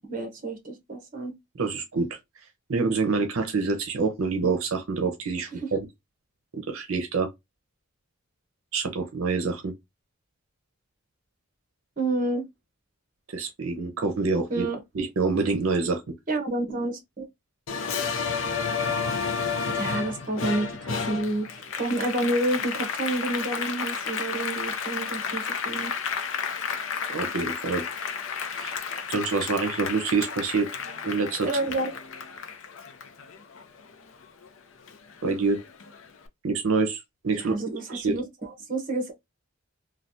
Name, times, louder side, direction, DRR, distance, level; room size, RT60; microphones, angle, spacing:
voice 1, 0.1-1.3 5.6-5.7 12.0-12.5 14.5-14.8 16.3-17.2 19.7-25.9 31.4-31.9 37.4-39.1, right 2 dB, 40° right, 1.0 m, -29 dB
voice 2, 1.6-2.1 2.7-5.8 6.5-7.3 8.7-9.7 13.3-14.7 14.9-16.0 27.1-27.8 28.5-28.7 29.1-30.7 31.0-31.5 35.2-35.6 36.4-37.6 37.9-38.2, right 4 dB, 80° right, 0.7 m, -26 dB
Applause, 17.7-34.5 34.9-36.0, left 6 dB, 65° left, 0.5 m, -32 dB
3.2 x 2.3 x 2.6 m
head